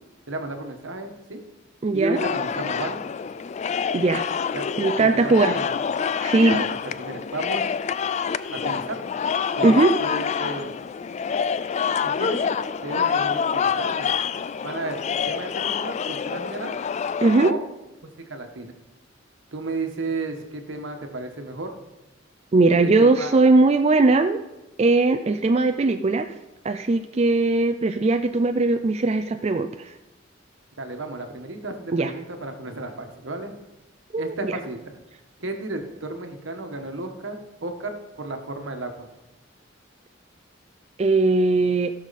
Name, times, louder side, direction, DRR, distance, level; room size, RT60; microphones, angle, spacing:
voice 1, 0.3-1.4 1.9-3.0 4.5-4.6 5.0-5.7 6.5-6.7 7.0-7.6 8.5-9.0 9.6-10.7 12.0-12.4 12.8-14.1 14.6-15.0 15.3-16.8 17.4-17.6 18.3-18.7 19.5-21.7 23.0-23.3 30.8-33.5 34.2-34.8 35.4-39.1, right 2 dB, 75° right, 5 dB, 1.4 m, -33 dB
voice 2, 1.8-2.3 3.9-4.2 4.8-5.6 6.2-6.6 9.6-9.9 17.2-17.5 22.5-24.4 24.8-26.3 26.6-29.9 31.9-32.1 34.1-34.5 41.0-41.9, right 3 dB, 35° right, 6 dB, 0.4 m, -19 dB
sound 1, 2.1-17.5, left 6 dB, 35° left, 0.3 m, -27 dB
16.0 x 6.4 x 4.1 m, 0.99 s
head